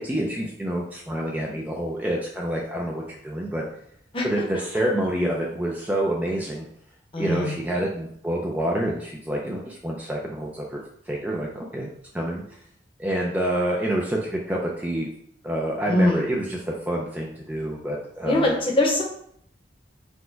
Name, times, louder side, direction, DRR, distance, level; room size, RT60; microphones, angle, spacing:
voice 1, 0.0-3.6 4.2-6.7 7.2-11.9 12.1-12.4 13.0-15.1 15.4-18.5, right 1 dB, 10° right, -2 dB, 0.4 m, -27 dB
voice 2, 7.1-7.6 15.9-16.2 18.2-19.0, left 1 dB, 30° left, -1 dB, 0.8 m, -22 dB
4.3 x 2.2 x 4.4 m, 0.69 s
head